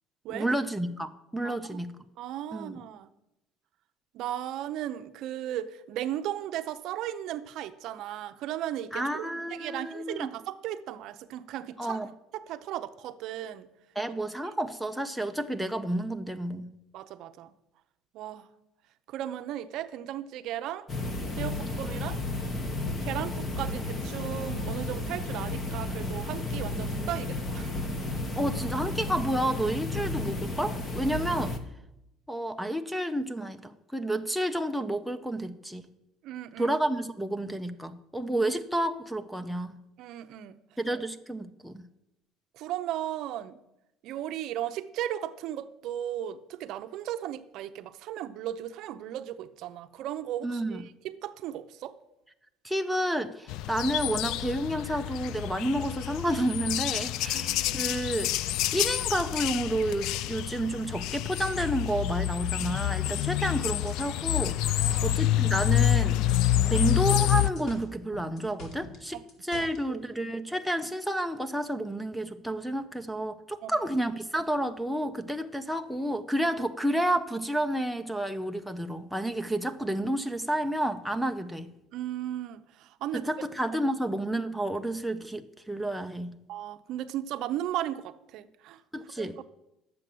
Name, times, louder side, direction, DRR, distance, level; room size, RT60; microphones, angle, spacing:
voice 1, 0.3-2.0 2.5-2.8 8.9-10.3 11.8-12.1 14.0-16.7 28.3-31.5 32.3-35.8 36.6-39.8 40.8-41.8 50.4-50.8 52.6-58.3 58.7-66.2 66.6-81.7 83.1-86.4 88.9-89.4, right 1 dB, ahead, 0.5 m, -30 dB
voice 2, 1.4-1.8 2.2-3.1 4.1-12.0 12.3-13.7 16.9-17.5 18.1-18.5 19.1-20.9 21.4-22.2 23.0-27.7 36.2-36.7 40.0-40.6 42.5-43.6 44.0-51.9 57.3-57.8 64.7-65.1 69.1-69.2 69.5-70.0 73.6-73.9 81.9-83.3 86.5-88.8 89.2-89.3, right 12 dB, 60° right, 0.6 m, -36 dB
sound 1, 20.9-31.6, left 2 dB, 25° left, 1.1 m, -33 dB
sound 2, 53.5-67.5, left 14 dB, 65° left, 0.3 m, -28 dB
sound 3, 62.6-65.3 65.6-67.2 67.4-69.8, equal, 50° left, 2.3 m, -45 dB
10.5 x 7.5 x 7.7 m
cardioid pair, 155°, 0 cm